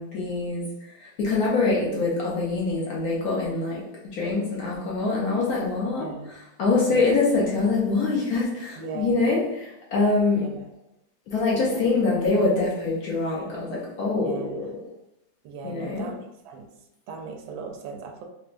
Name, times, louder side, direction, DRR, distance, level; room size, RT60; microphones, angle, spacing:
voice 1, 0.0-3.8 4.1-10.5 11.3-14.8 15.6-16.1, left 3 dB, 70° left, -4 dB, 1.0 m, -25 dB
voice 2, 6.0-6.3 6.9-7.1 8.8-9.2 10.3-10.7 11.5-11.8 12.2-12.3 14.2-14.6 15.4-16.6 17.1-18.2, right 5 dB, 90° right, 3 dB, 1.4 m, -38 dB
4.4 x 2.1 x 2.4 m, 0.84 s
omnidirectional pair, 2.1 m